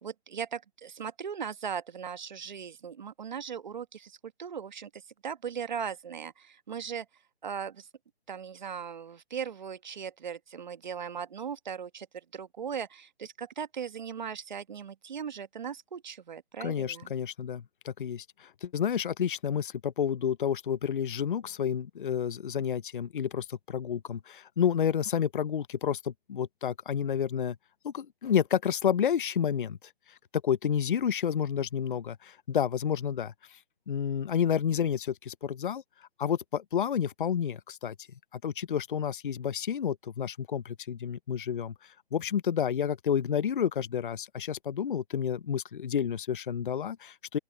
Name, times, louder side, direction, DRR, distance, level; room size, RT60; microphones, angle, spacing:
voice 1, 0.0-7.1 7.4-7.9 8.3-12.1 12.3-17.1, right 7 dB, 45° right, 1.1 m, -38 dB
voice 2, 16.6-27.6 27.8-29.8 30.4-33.6 33.9-35.8 36.2-37.9 38.3-47.4, left 8 dB, 50° left, 0.5 m, -30 dB
open air
hypercardioid pair, 175°, 33 cm